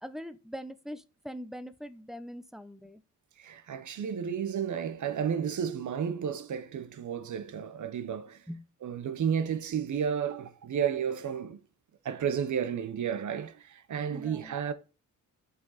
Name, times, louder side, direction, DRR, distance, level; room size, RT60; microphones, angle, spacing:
voice 1, 0.0-3.0 8.5-8.6 14.1-14.6, equal, ahead, 0.6 m, -42 dB
voice 2, 3.4-8.4 8.8-11.6 12.0-14.7, right 8 dB, 65° right, 1.0 m, -32 dB
7.0 x 5.3 x 4.0 m
cardioid pair, 100°, 32 cm